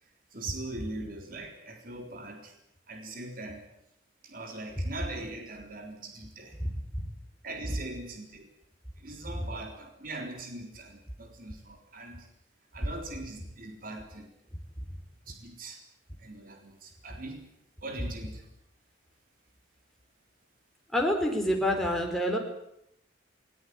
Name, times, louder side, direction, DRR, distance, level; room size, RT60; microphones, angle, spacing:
voice 1, 0.0-2.5 2.9-3.7 4.2-6.6 7.4-8.5 9.0-12.3 12.7-14.3 15.3-15.8 16.2-17.5 17.8-18.5, right 2 dB, 45° right, 4 dB, 3.7 m, -41 dB
voice 2, 20.9-22.4, equal, ahead, 1 dB, 4.5 m, -27 dB
20.0 x 19.5 x 9.8 m, 0.77 s
head